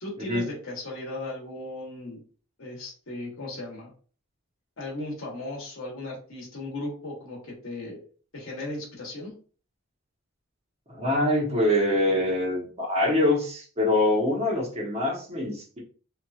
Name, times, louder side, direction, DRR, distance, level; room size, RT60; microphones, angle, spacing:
voice 1, 0.0-2.2 2.6-3.9 4.8-8.0 8.3-9.3, left 2 dB, 70° left, -2 dB, 1.1 m, -36 dB
voice 2, 10.9-15.8, left 1 dB, 30° right, -3 dB, 0.9 m, -24 dB
2.8 x 2.5 x 2.3 m, 0.40 s
head